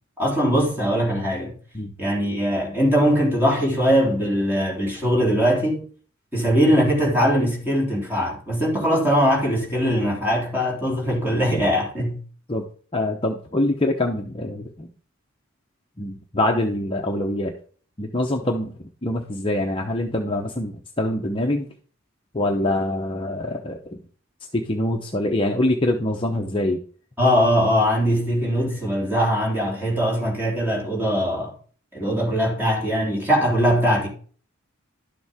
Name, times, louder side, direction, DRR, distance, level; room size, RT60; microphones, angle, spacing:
voice 1, 0.2-1.5 2.0-5.8 6.3-12.2 27.2-31.5 31.9-34.1, equal, 10° right, 3.2 m, -21 dB
voice 2, 12.9-14.9 16.0-17.5 18.0-21.7 22.3-24.0 24.5-26.8, left 1 dB, 25° left, 0.8 m, -24 dB
11.5 x 7.0 x 3.6 m
head